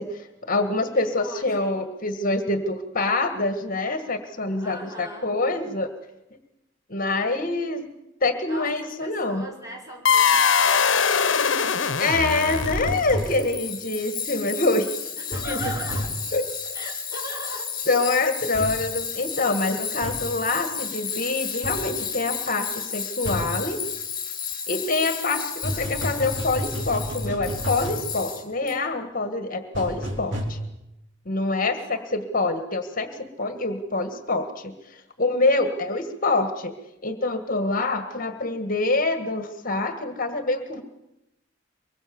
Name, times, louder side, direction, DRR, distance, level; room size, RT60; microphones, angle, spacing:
voice 1, 0.0-5.9 6.9-7.9 8.2-9.4 12.0-14.9 15.4-15.7 16.3-16.7 17.9-23.8 24.7-30.6 31.2-36.7 37.0-40.8, left 2 dB, 45° left, 8 dB, 1.7 m, -26 dB
voice 2, 0.9-1.8 4.6-5.3 8.5-11.7 15.2-16.1 16.7-17.7 25.3-25.4 25.7-25.9 31.6-32.2, right 1 dB, 20° right, -1 dB, 5.6 m, -39 dB
sound 1, 10.0-13.2, left 6 dB, 80° left, 1.1 m, -21 dB
Tools, 12.3-28.7, left 7 dB, 25° left, 3.0 m, -33 dB
sound 2, 12.6-13.3 15.3-16.1 18.5-18.8 20.0-20.2 21.6-21.8 23.3-23.5 25.6-28.1 29.7-30.4, equal, 70° right, 4.5 m, -31 dB
24.0 x 22.0 x 7.1 m, 0.90 s
head